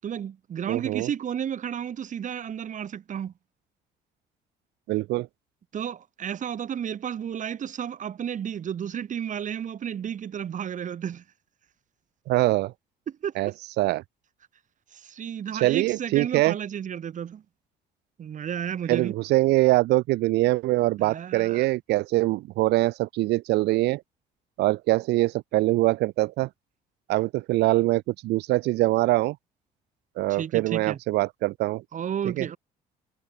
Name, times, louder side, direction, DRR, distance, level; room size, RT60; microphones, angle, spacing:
voice 1, 0.0-3.3 5.7-11.2 13.1-13.3 14.9-17.4 18.2-19.1 21.0-21.6 30.3-31.0 31.9-32.6, right 8 dB, 50° right, 6.3 m, -32 dB
voice 2, 0.7-1.1 4.9-5.3 12.3-12.7 13.4-13.5 13.8-14.0 15.5-16.5 18.9-24.0 24.6-26.5 27.1-29.4 30.2-31.8 32.2-32.5, right 18 dB, 85° right, 2.7 m, -23 dB
cardioid pair, 110°, 17 cm